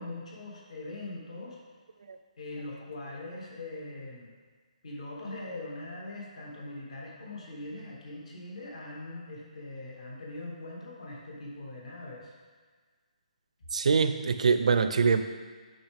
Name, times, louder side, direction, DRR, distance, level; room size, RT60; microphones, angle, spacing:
voice 1, 0.0-1.6 2.4-4.3 4.8-12.3, left 2 dB, 60° left, -3 dB, 2.0 m, -41 dB
voice 2, 13.7-15.2, right 5 dB, 60° right, 9 dB, 0.5 m, -24 dB
8.8 x 5.7 x 3.5 m, 1.5 s
hypercardioid pair, 175°, 4 cm